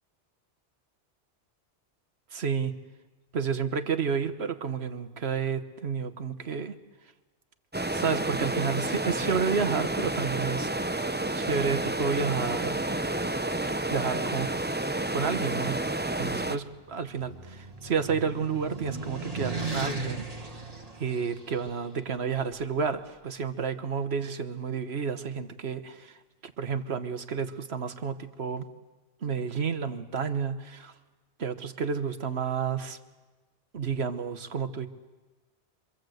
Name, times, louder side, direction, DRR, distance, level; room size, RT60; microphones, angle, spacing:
voice 1, 2.3-2.7 3.3-6.7 7.9-10.7 11.3-12.8 13.9-14.5 15.1-15.8 16.2-20.3 21.0-26.1 26.6-28.6 29.2-30.9 31.4-33.0 33.7-34.9, right 6 dB, 65° right, 9 dB, 1.6 m, -30 dB
sound 1, 7.7-16.6, right 2 dB, 10° right, 0.6 m, -30 dB
sound 2, 16.6-21.7, right 3 dB, 30° right, 2.5 m, -37 dB
26.5 x 24.5 x 8.0 m, 1.3 s
omnidirectional pair, 1.2 m